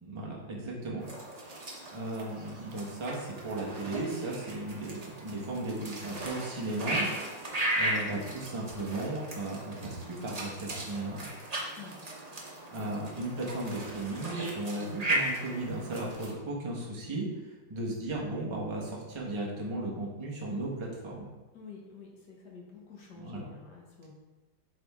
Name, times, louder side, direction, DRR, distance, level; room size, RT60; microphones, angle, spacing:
voice 1, 0.0-1.0 1.3-7.1 7.8-11.2 12.4-17.3 17.7-21.3 23.2-23.4, right 2 dB, 25° right, -3 dB, 0.7 m, -36 dB
sound 1, 1.0-16.3, right 1 dB, 90° right, 0.3 m, -37 dB
voice 2, 21.5-24.1, left 5 dB, 60° left, -1 dB, 1.5 m, -49 dB
8.4 x 3.5 x 3.5 m, 1.2 s
omnidirectional pair, 2.3 m